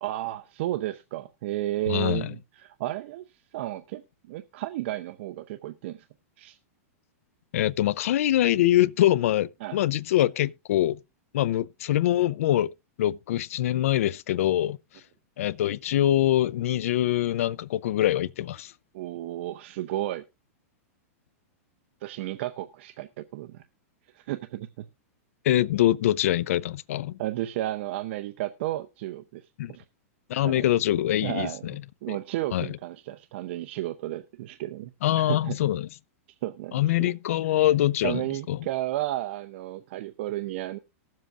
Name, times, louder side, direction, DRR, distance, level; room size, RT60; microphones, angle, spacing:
voice 1, 0.0-3.2 3.5-6.1 6.4-6.6 9.6-9.8 18.9-20.2 22.0-23.6 24.1-24.9 27.2-29.8 30.4-30.6 31.2-31.7 32.0-35.6 36.4-37.0 38.0-40.8, right 15 dB, 50° right, 0.6 m, -33 dB
voice 2, 1.9-2.3 7.5-11.0 11.3-12.7 13.0-14.8 15.4-18.7 25.4-27.2 29.6-29.7 30.3-31.8 32.1-32.2 32.5-32.7 35.0-35.9 36.7-38.2 38.5-38.6, left 13 dB, 70° left, 0.5 m, -24 dB
19.5 x 7.5 x 2.4 m
supercardioid pair, 155°, 8 cm